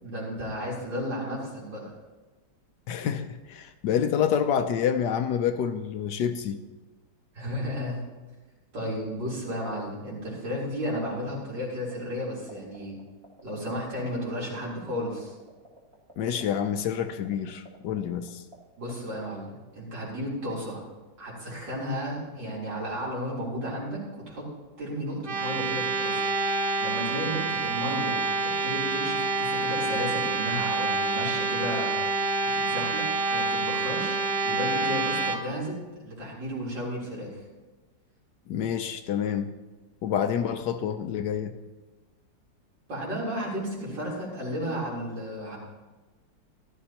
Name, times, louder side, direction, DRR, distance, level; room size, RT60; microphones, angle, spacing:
voice 1, 0.0-1.9 7.3-8.0 8.7-12.9 13.4-15.3 18.8-19.5 19.7-20.8 21.2-24.5 24.8-26.2 26.8-32.0 32.4-34.2 34.4-37.4 42.9-45.6, equal, 70° right, 4.4 m, -33 dB
voice 2, 2.9-6.6 16.2-18.4 38.5-39.5 40.0-41.5, left 8 dB, 70° left, 1.2 m, -28 dB
sound 1, 11.4-11.9 12.2-14.3 14.6-14.7 14.8-18.6 18.8-19.2, equal, 15° right, 1.9 m, -49 dB
sound 2, 25.2-35.4, right 3 dB, 45° right, 0.7 m, -27 dB
15.0 x 12.5 x 2.9 m
omnidirectional pair, 2.0 m